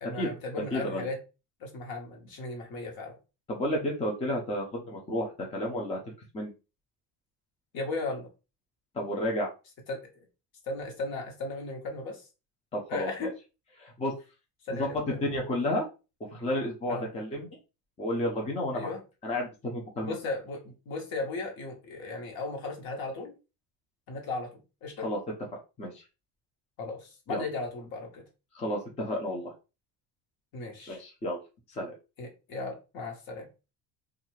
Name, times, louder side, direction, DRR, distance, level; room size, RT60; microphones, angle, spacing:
voice 1, 0.0-1.2 1.6-3.1 7.7-8.3 9.9-10.2 10.7-12.2 12.9-13.3 14.7-15.3 16.9-17.1 18.7-19.0 20.0-23.3 24.1-25.1 26.8-28.2 30.5-31.0 32.2-33.5, left 3 dB, 55° left, 2 dB, 1.1 m, -36 dB
voice 2, 0.7-1.1 3.5-6.0 6.3-6.5 8.9-9.5 12.7-13.3 13.8-14.1 14.8-15.8 16.3-17.5 18.0-18.9 19.2-20.1 25.0-25.2 25.8-26.0 27.3-27.5 28.5-29.5 30.9-31.4 31.7-31.9, left 1 dB, 15° left, -1 dB, 0.5 m, -31 dB
2.6 x 2.4 x 3.0 m, 0.30 s
cardioid pair, 140°, 43 cm